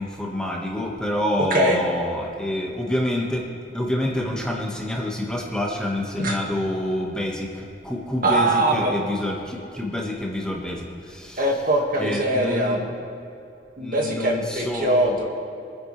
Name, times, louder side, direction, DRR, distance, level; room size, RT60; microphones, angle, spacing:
voice 1, 0.0-3.4 3.7-11.4 12.0-12.8 13.8-15.2, left 1 dB, 5° left, -2 dB, 1.6 m, -27 dB
voice 2, 8.2-9.0 11.4-12.9 13.8-15.3, right 1 dB, 50° right, 0 dB, 2.0 m, -22 dB
26.0 x 10.0 x 3.4 m, 2.7 s
head